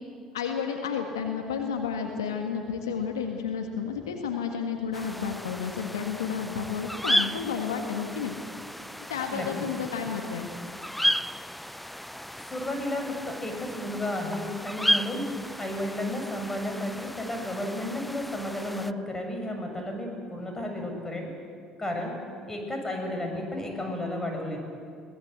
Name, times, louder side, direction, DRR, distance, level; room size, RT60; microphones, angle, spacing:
voice 1, 0.3-8.3 9.1-10.5, left 6 dB, 85° left, 4 dB, 1.6 m, -31 dB
sound 1, 4.9-18.9, equal, 5° left, 0.6 m, -33 dB
voice 2, 9.3-9.6 12.5-15.3 15.6-21.3 21.8-22.1 22.5-24.6, left 1 dB, 20° left, 2 dB, 7.2 m, -32 dB
23.0 x 18.5 x 8.1 m, 2.2 s
hypercardioid pair, 60°, 2 cm